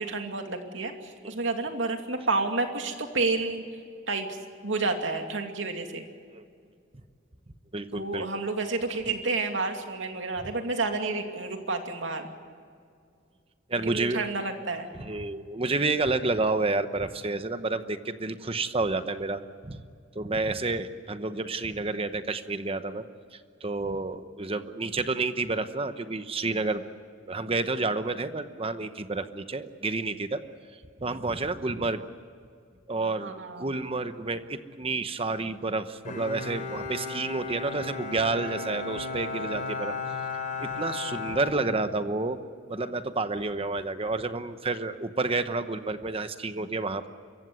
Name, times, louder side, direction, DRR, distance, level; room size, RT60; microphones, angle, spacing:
voice 1, 0.0-3.6 4.1-4.4 4.6-6.1 7.9-12.3 13.8-14.9 33.2-33.7, right 3 dB, 75° right, 4 dB, 2.6 m, -30 dB
voice 2, 7.7-8.3 13.7-14.4 14.9-19.8 20.1-23.0 23.3-26.8 27.3-30.4 31.0-32.1 32.9-39.9 40.6-42.4 42.7-47.1, right 3 dB, 30° right, 10 dB, 0.9 m, -30 dB
Bowed string instrument, 36.0-42.2, left 4 dB, 45° left, 4.8 m, -35 dB
26.0 x 15.5 x 9.5 m, 2.2 s
head